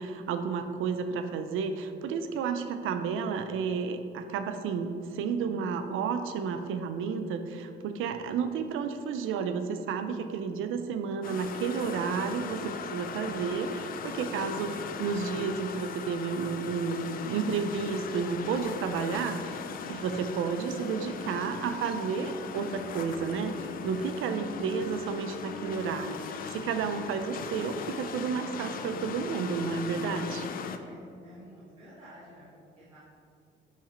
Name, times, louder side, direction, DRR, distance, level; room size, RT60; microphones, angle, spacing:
voice 1, 0.0-19.4 19.9-26.2 26.5-30.5, right 6 dB, 85° right, 8 dB, 0.5 m, -31 dB
sound 1, 11.2-30.8, left 6 dB, 45° left, 0.4 m, -38 dB
voice 2, 12.5-13.0 22.0-22.2 30.8-33.0, equal, 25° right, -10 dB, 1.4 m, -51 dB
5.8 x 4.9 x 4.3 m, 2.5 s
cardioid pair, 170°, 21 cm